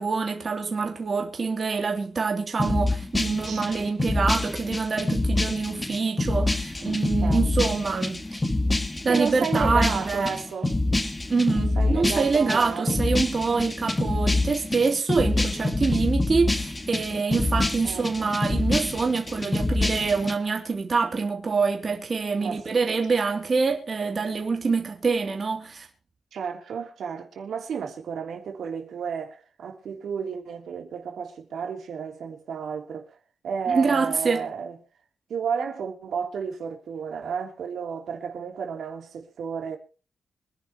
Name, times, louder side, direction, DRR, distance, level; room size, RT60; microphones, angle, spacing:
voice 1, 0.0-8.4 9.0-10.3 11.3-25.9 33.7-34.5, right 4 dB, 30° right, 2.9 m, -25 dB
sound 1, 2.6-20.3, left 2 dB, 15° left, 1.5 m, -26 dB
voice 2, 3.4-3.8 7.2-7.4 9.1-10.7 11.5-13.0 17.8-18.3 22.4-22.6 26.3-33.2 33.4-34.7 35.3-39.8, right 6 dB, 70° right, 3.2 m, -32 dB
25.5 x 11.0 x 3.0 m
wide cardioid pair, 180°, 0 cm